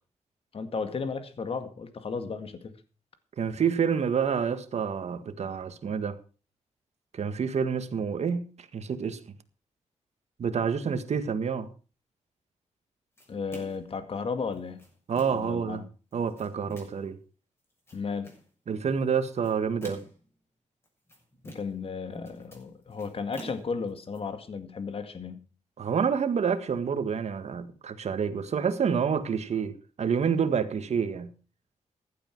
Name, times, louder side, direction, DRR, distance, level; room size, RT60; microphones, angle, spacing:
voice 1, 0.5-2.7 13.3-14.8 15.3-15.9 17.9-18.3 21.4-25.4, left 5 dB, 50° left, 2.0 m, -34 dB
voice 2, 3.4-6.2 7.1-9.2 10.4-11.7 15.1-15.8 16.1-17.2 18.7-20.0 25.8-31.3, right 6 dB, 60° right, 1.8 m, -28 dB
sound 1, 13.2-13.9 14.5-15.6 16.1-17.1 17.6-18.5 19.2-20.3 20.8-21.9 22.1-24.2, equal, 20° left, 6.8 m, -48 dB
15.5 x 12.0 x 4.7 m
wide cardioid pair, 115°, 12 cm